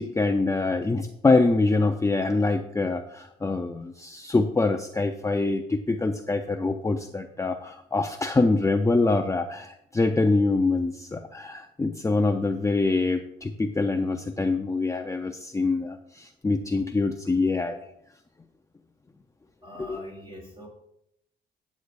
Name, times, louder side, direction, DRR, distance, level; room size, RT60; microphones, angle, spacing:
voice 1, 0.0-17.8 19.8-20.0, left 3 dB, 15° left, 5 dB, 0.6 m, -25 dB
voice 2, 19.6-20.7, left 1 dB, 25° right, -1 dB, 4.4 m, -43 dB
14.5 x 8.4 x 2.6 m, 0.77 s
cardioid pair, 90°, 20 cm